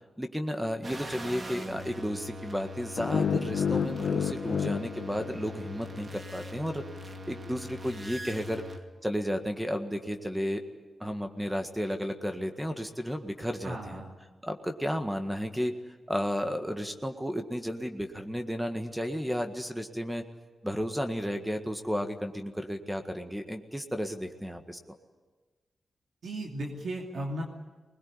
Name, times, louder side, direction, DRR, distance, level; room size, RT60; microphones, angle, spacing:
voice 1, 0.2-6.8 7.3-8.6 9.0-10.6 11.0-14.0 14.4-15.7 16.1-20.2 20.6-24.8, equal, 5° right, 6 dB, 1.7 m, -33 dB
sound 1, 0.8-8.8, left 1 dB, 40° right, 2.5 m, -42 dB
sound 2, 3.0-6.0, left 7 dB, 85° left, 1.0 m, -30 dB
voice 2, 13.6-14.1 26.2-27.4, right 1 dB, 75° right, 0 dB, 2.7 m, -35 dB
21.0 x 20.5 x 9.8 m, 1.3 s
cardioid pair, 75°, 0 cm